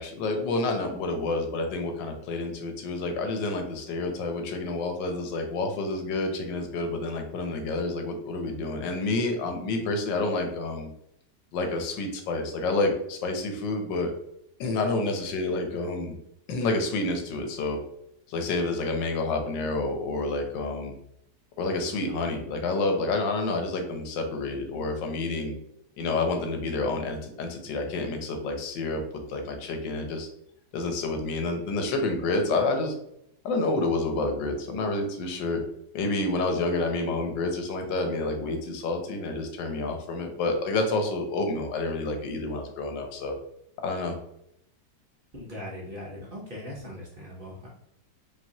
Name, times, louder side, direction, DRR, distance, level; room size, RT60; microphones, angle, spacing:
voice 1, 0.0-10.9 11.5-14.1 14.6-16.2 16.5-17.8 18.3-20.9 21.6-25.5 26.0-30.3 30.7-32.9 33.4-35.6 35.9-43.4 43.8-44.1, left 2 dB, 90° left, 4 dB, 1.5 m, -29 dB
voice 2, 45.3-47.7, left 1 dB, 40° right, -4 dB, 0.9 m, -40 dB
5.2 x 2.9 x 2.8 m, 0.77 s
omnidirectional pair, 1.9 m